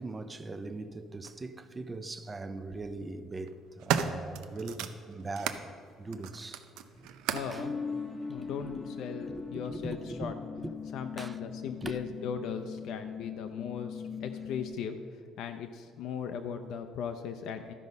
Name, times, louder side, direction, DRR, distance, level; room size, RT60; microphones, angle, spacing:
voice 1, 0.0-5.7 6.0-6.7 7.5-7.7 8.3-8.7 9.3-9.4 9.7-10.3 11.2-11.4 11.8-12.0, right 2 dB, 15° right, 0.4 m, -40 dB
sound 1, 1.2-1.4 2.5-2.8 3.4-5.7 6.1-7.6 8.5-8.6, right 8 dB, 85° right, 0.5 m, -35 dB
voice 2, 7.3-7.7 8.3-10.4 10.9-17.7, left 7 dB, 60° left, 0.5 m, -38 dB
sound 2, 7.6-14.7, left 5 dB, 10° left, 0.8 m, -40 dB
13.0 x 5.3 x 5.3 m
cardioid pair, 175°, 0 cm